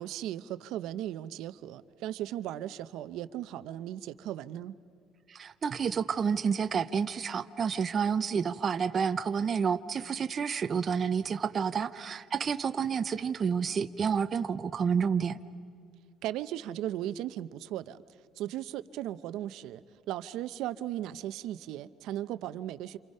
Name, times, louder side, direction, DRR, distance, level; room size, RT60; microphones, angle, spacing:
voice 1, 0.0-4.7 16.2-18.0 18.4-23.0, right 12 dB, 65° right, 0.7 m, -37 dB
voice 2, 5.3-15.4, right 6 dB, 30° right, 0.6 m, -29 dB
28.0 x 28.0 x 5.5 m
cardioid pair, 160°, 0 cm